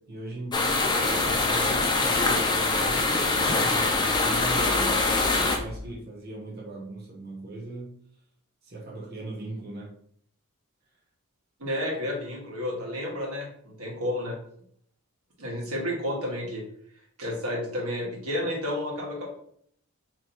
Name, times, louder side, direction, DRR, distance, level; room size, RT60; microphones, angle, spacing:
voice 1, 0.1-5.1 5.4-8.0 8.6-9.9, right 2 dB, 45° right, -3 dB, 0.9 m, -38 dB
sound 1, 0.5-5.6, left 3 dB, 20° left, 0.4 m, -24 dB
sound 2, 0.9-5.9, left 2 dB, 70° left, 0.6 m, -41 dB
voice 2, 11.6-14.4 15.4-16.6 17.2-19.3, left 1 dB, 90° right, -3 dB, 1.4 m, -31 dB
3.0 x 2.6 x 4.3 m, 0.64 s
head